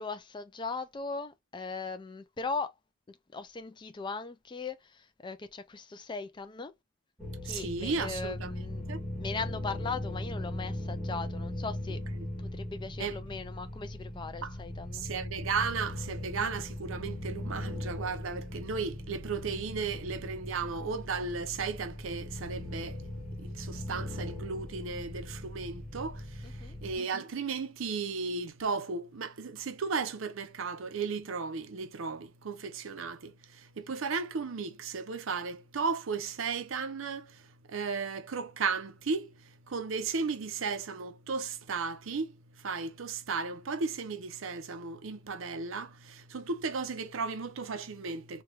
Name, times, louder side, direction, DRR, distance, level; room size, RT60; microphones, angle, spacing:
voice 1, 0.0-2.7 3.1-6.7 7.4-8.8 9.2-12.0 12.4-15.1 26.4-26.8, left 4 dB, 20° left, 0.3 m, -39 dB
sound 1, 7.2-27.0, left 1 dB, ahead, 1.1 m, -39 dB
voice 2, 7.4-8.5 8.9-9.0 13.0-13.2 14.4-14.5 14.9-23.0 23.4-48.4, right 5 dB, 70° right, 0.6 m, -35 dB
3.1 x 2.3 x 3.0 m
head